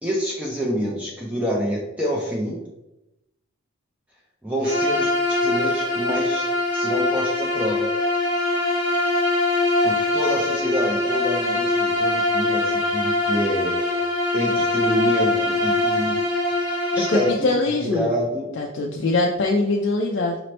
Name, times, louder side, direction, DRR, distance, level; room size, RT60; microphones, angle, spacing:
voice 1, 0.0-2.6 4.4-6.5 6.7-7.9 9.8-14.0 14.3-16.2 16.9-17.5 17.8-18.6, equal, 5° right, -3 dB, 0.5 m, -27 dB
Bowed string instrument, 4.6-17.4, left 2 dB, 50° right, 1.1 m, -22 dB
voice 2, 17.0-18.1 18.6-20.4, left 2 dB, 55° left, 1 dB, 0.4 m, -22 dB
5.0 x 2.9 x 3.1 m, 0.93 s
head